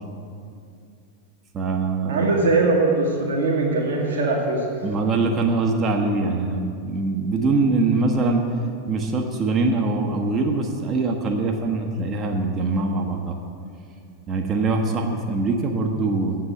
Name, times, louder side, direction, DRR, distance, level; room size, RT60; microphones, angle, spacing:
voice 1, 1.5-2.2 4.8-8.4 8.9-13.4 14.3-16.4, right 3 dB, 25° right, 2 dB, 0.9 m, -23 dB
voice 2, 2.1-4.8, right 3 dB, 60° right, -2 dB, 1.3 m, -21 dB
7.9 x 7.8 x 8.3 m, 2.4 s
figure-of-eight pair, 90°, 0 cm